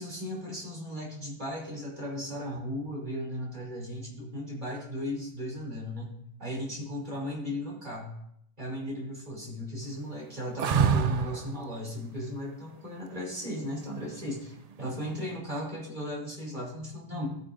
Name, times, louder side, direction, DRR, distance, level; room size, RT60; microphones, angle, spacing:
voice 1, 0.0-8.1 8.6-17.3, left 1 dB, 35° right, -3 dB, 3.0 m, -36 dB
sound 1, 10.6-11.5 14.1-14.7, right 6 dB, 85° right, 0.3 m, -26 dB
14.5 x 8.6 x 2.5 m, 0.73 s
omnidirectional pair, 1.3 m